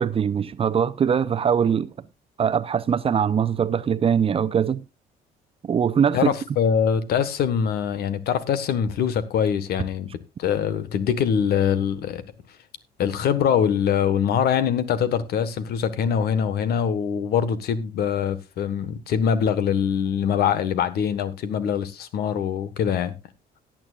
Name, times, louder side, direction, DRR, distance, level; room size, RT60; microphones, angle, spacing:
voice 1, 0.0-1.9 2.4-4.8 5.6-6.3, right 7 dB, 35° right, 0.7 m, -22 dB
voice 2, 6.1-10.1 10.4-12.2 13.0-23.1, left 8 dB, 70° left, 1.4 m, -23 dB
18.0 x 8.9 x 2.4 m
cardioid pair, 110°, 17 cm